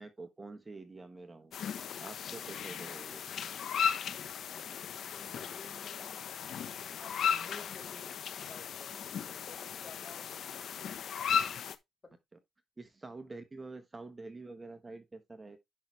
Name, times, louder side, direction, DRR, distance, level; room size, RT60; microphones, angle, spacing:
voice 1, 0.0-1.5 2.0-3.2 12.8-15.6, right 3 dB, 20° right, 1.2 m, -47 dB
sound 1, 1.5-11.8, left 8 dB, 65° left, 1.0 m, -36 dB
voice 2, 5.0-6.2 7.0-8.0 8.3-10.7 12.0-12.1, left 4 dB, 30° left, 4.4 m, -54 dB
10.5 x 5.9 x 3.3 m
cardioid pair, 90°, 0 cm